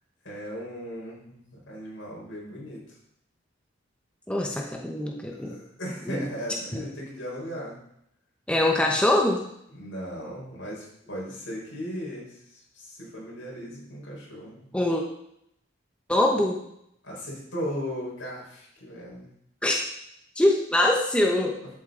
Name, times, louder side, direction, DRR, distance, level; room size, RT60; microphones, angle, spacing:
voice 1, 0.2-2.8 5.3-7.8 9.7-14.7 17.0-19.3, equal, 80° left, -4 dB, 4.8 m, -37 dB
voice 2, 4.3-5.6 6.1-6.3 6.7-6.8 8.5-9.5 14.7-15.0 16.1-16.6 19.6-19.8 20.4-21.7, left 1 dB, 5° left, 0 dB, 1.0 m, -23 dB
11.5 x 8.3 x 3.9 m, 0.75 s
head